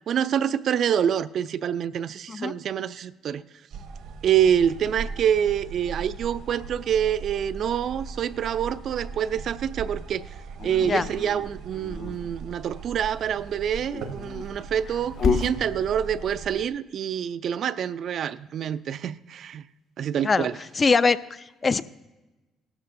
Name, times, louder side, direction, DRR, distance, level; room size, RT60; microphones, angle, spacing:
voice 1, 0.1-3.4 4.2-10.2 10.6-19.6 20.0-20.6, right 9 dB, 60° right, 0.4 m, -26 dB
sound 1, 3.7-16.7, right 5 dB, 80° right, 1.0 m, -39 dB
Dog, 10.6-12.2 13.8-15.6, left 5 dB, 65° left, 1.1 m, -29 dB
voice 2, 20.7-21.8, left 4 dB, 30° left, 0.4 m, -22 dB
17.5 x 13.0 x 2.6 m
cardioid pair, 95°, 0 cm